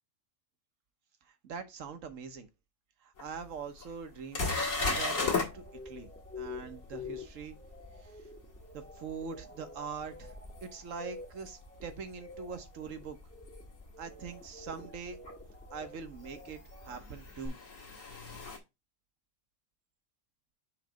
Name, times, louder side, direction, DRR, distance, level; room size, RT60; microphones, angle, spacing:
voice 1, 1.2-2.5 3.0-6.1 6.4-7.6 8.0-8.3 8.7-10.3 10.6-13.2 14.0-15.2 15.7-17.6, right 5 dB, 65° right, 1.3 m, -43 dB
sound 1, 3.2-3.3 3.8-3.9 4.3-5.5 10.6-10.7 13.5-13.6 15.3-15.4 16.7-18.6, left 3 dB, 70° left, 2.1 m, -33 dB
sound 2, 5.1-17.5, left 3 dB, 10° left, 0.9 m, -48 dB
6.6 x 3.2 x 4.9 m
omnidirectional pair, 1.4 m